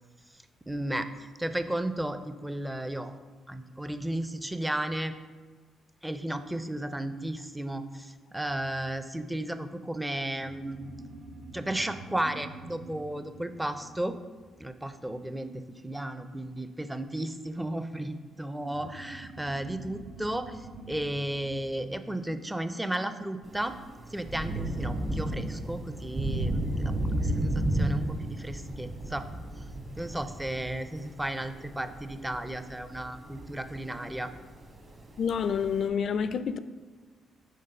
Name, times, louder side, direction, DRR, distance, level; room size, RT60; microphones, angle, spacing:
voice 1, 0.7-3.2 3.5-5.2 6.0-10.8 11.5-14.2 14.6-23.7 24.1-29.3 29.6-29.7 30.0-34.3, right 1 dB, 10° right, 9 dB, 0.4 m, -34 dB
sound 1, 10.2-15.2 18.6-23.5, right 2 dB, 65° right, 0.8 m, -47 dB
Thunder / Rain, 23.4-35.9, right 1 dB, 35° right, 1.2 m, -33 dB
voice 2, 35.2-36.6, left 7 dB, 60° left, 12 dB, 0.3 m, -28 dB
6.6 x 3.5 x 5.3 m, 1.4 s
cardioid pair, 90°, 0 cm